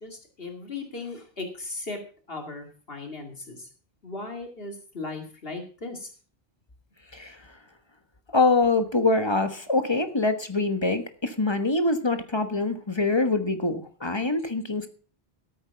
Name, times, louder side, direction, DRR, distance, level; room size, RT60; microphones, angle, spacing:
voice 1, 0.0-2.0 2.3-3.7 4.0-6.1, left 3 dB, 65° left, 3 dB, 2.5 m, -37 dB
voice 2, 8.3-14.9, left 3 dB, 25° left, 8 dB, 1.3 m, -24 dB
13.5 x 8.6 x 5.7 m, 0.39 s
omnidirectional pair, 1.0 m